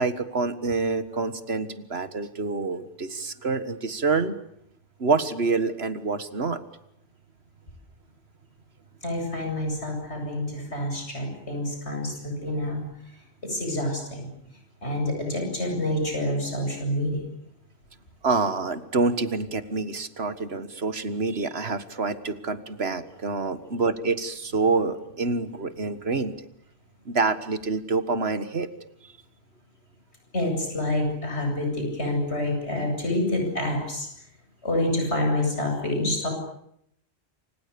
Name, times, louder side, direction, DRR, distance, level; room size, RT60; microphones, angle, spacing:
voice 1, 0.0-4.3 5.0-6.6 18.2-26.4 27.1-28.7, right 4 dB, 70° right, 12 dB, 1.9 m, -27 dB
voice 2, 9.0-12.8 13.4-14.3 14.8-17.2 30.3-34.1 34.6-36.3, left 1 dB, 80° left, 2 dB, 8.4 m, -27 dB
28.0 x 26.0 x 7.0 m, 0.74 s
omnidirectional pair, 1.1 m